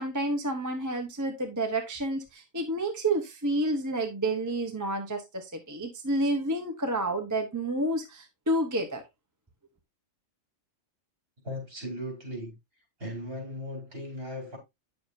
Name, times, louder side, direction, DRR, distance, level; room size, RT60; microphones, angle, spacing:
voice 1, 0.0-9.0, right 1 dB, 15° right, 0.9 m, -29 dB
voice 2, 11.4-12.5 13.0-14.6, left 1 dB, 50° right, 4.2 m, -37 dB
9.2 x 6.8 x 2.7 m
omnidirectional pair, 1.3 m